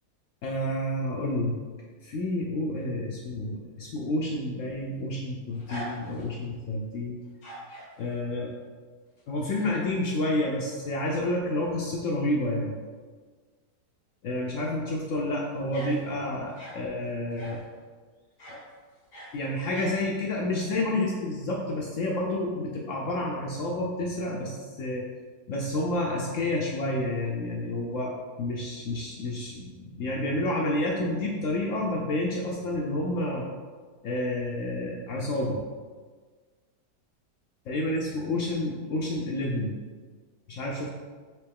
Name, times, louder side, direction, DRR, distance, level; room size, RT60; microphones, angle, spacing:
voice 1, 0.4-1.6 2.0-7.2 8.0-8.5 9.3-12.7 14.2-17.6 18.5-18.6 19.3-25.0 25.5-33.4 34.0-35.6 37.7-39.8 40.5-40.9, left 1 dB, 80° left, -2 dB, 0.7 m, -29 dB
sound 1, 4.6-6.5 7.2-7.9 9.2-9.7 10.1-10.2 11.6-11.7 11.9-12.0 14.9-15.1 15.7-16.8 17.3-17.7 18.4-18.6 18.9-20.0, right 1 dB, 45° left, 1.9 m, -43 dB
4.5 x 3.1 x 3.4 m, 1.5 s
omnidirectional pair, 1.9 m